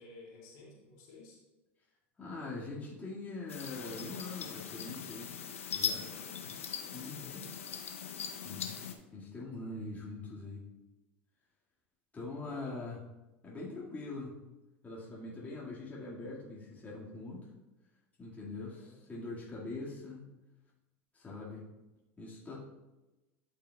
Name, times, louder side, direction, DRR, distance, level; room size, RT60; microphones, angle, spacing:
voice 1, 0.0-1.4 6.0-7.5 12.5-12.8 15.3-15.6 18.7-19.1, left 2 dB, 60° left, -3 dB, 2.6 m, -54 dB
voice 2, 2.2-5.3 5.7-6.0 6.9-7.5 8.3-8.7 9.1-10.6 12.1-13.0 13.4-14.3 14.8-17.5 18.2-20.3 21.1-21.6 22.2-22.6, left 3 dB, 20° left, -5 dB, 1.9 m, -43 dB
sound 1, 3.5-8.9, left 7 dB, 90° left, 0.7 m, -40 dB
11.5 x 5.6 x 2.3 m, 1.0 s
hypercardioid pair, 85°, 7 cm